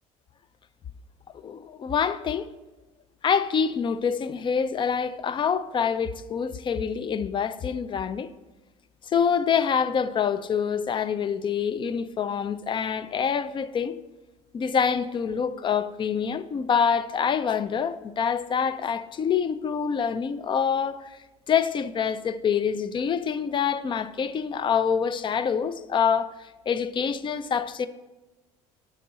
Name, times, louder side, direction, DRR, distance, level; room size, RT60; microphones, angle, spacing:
voice 1, 1.4-2.5 3.2-8.3 9.1-14.0 14.5-21.2 21.5-27.9, left 7 dB, 35° left, 0.5 m, -26 dB
6.6 x 3.8 x 6.2 m
supercardioid pair, 85°, 15 cm